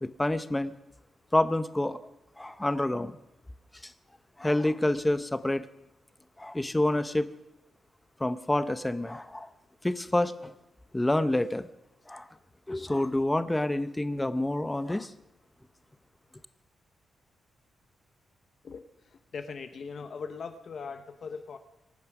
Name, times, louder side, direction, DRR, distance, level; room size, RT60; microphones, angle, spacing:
voice 1, 0.0-0.7 1.3-2.0 2.4-3.2 3.8-3.9 4.4-5.7 6.4-7.3 8.2-9.5 9.8-10.5 10.9-11.7 12.1-12.3 12.7-15.1, left 1 dB, 10° left, 0.7 m, -28 dB
voice 2, 19.3-21.6, left 5 dB, 45° left, 0.9 m, -39 dB
24.5 x 9.5 x 6.1 m
wide cardioid pair, 175°, 0 cm